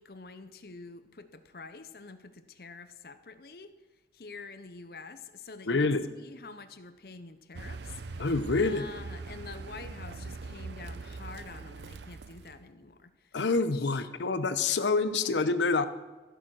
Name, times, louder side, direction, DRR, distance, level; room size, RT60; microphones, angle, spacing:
voice 1, 0.0-3.7 4.1-5.8 6.2-8.3 8.5-14.1, left 4 dB, 55° left, 11 dB, 0.7 m, -47 dB
voice 2, 5.7-6.1 8.2-8.9 13.3-15.9, left 3 dB, 90° left, 12 dB, 0.7 m, -27 dB
Car, 7.5-12.7, right 3 dB, 80° right, 0.6 m, -42 dB
15.0 x 7.0 x 6.3 m, 1.2 s
head